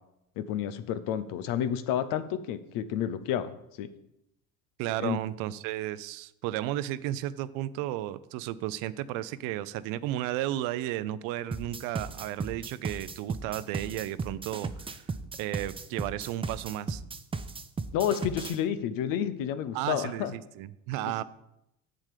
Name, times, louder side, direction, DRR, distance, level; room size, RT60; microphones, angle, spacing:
voice 1, 0.4-3.5 3.8-3.9 5.0-5.2 17.9-20.3 21.0-21.2, left 9 dB, 75° left, 13 dB, 0.8 m, -30 dB
voice 2, 4.8-15.0 15.4-17.0 19.7-21.2, right 14 dB, 80° right, 16 dB, 0.6 m, -33 dB
sound 1, 11.5-18.6, right 4 dB, 15° right, 0.6 m, -36 dB
7.5 x 7.1 x 4.9 m, 0.82 s
supercardioid pair, 90°, 34 cm